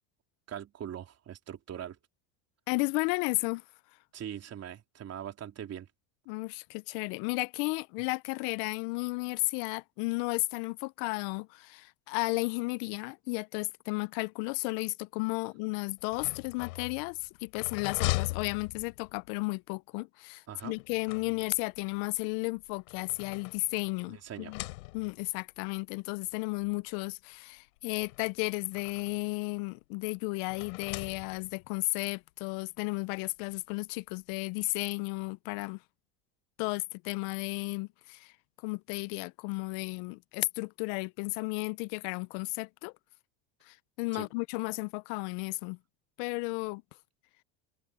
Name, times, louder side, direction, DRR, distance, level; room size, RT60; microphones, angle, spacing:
voice 1, 0.5-2.0 4.1-5.9 20.5-20.8 24.1-24.5 44.1-44.3, right 10 dB, 40° right, 3.6 m, -41 dB
voice 2, 2.7-3.6 6.3-24.6 24.9-35.8 36.6-38.3 38.6-42.9 43.7-45.8 46.2-46.8, left 27 dB, 70° left, 0.6 m, -33 dB
sound 1, 16.0-19.3 20.6-21.8 22.6-24.0 24.4-25.3 26.2-26.3 26.7-26.8 27.9-29.3 30.5-31.7, left 21 dB, 85° left, 4.4 m, -39 dB
open air
supercardioid pair, 110°, 40 cm